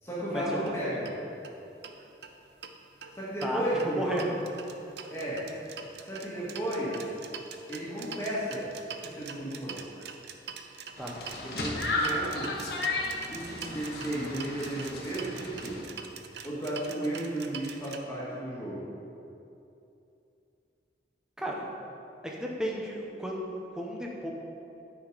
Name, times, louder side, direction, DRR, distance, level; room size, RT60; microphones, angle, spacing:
voice 1, 0.0-1.1 3.1-4.3 5.1-5.5 6.0-7.0 7.7-8.7 9.0-9.8 11.4-12.7 13.3-15.9 16.4-18.9, right 1 dB, 15° left, -8 dB, 2.0 m, -34 dB
sound 1, 0.6-0.7 1.0-1.2 1.4-1.5 1.8-2.7 3.0-18.0, right 6 dB, 70° right, 0.6 m, -44 dB
sound 2, 11.0-15.8, left 2 dB, 65° left, 1.3 m, -34 dB
voice 2, 21.4-21.7 22.3-24.3, equal, 5° right, -2 dB, 0.9 m, -34 dB
9.4 x 5.9 x 5.0 m, 2.7 s
head